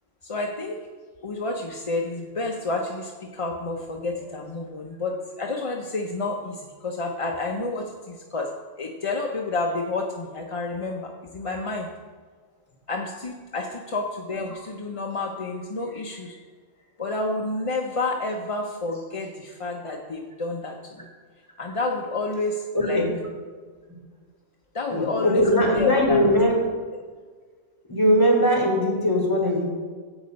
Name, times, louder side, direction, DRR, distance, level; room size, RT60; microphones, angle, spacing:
voice 1, 0.2-0.8 1.2-11.9 12.9-16.4 17.0-21.1 21.6-23.1 24.7-25.4 25.7-26.3 26.6-26.7, left 3 dB, 35° left, 1 dB, 0.6 m, -29 dB
voice 2, 22.7-23.1 24.9-26.6 27.9-29.6, equal, 15° left, -3 dB, 3.3 m, -20 dB
11.0 x 8.0 x 5.2 m, 1.5 s
omnidirectional pair, 1.3 m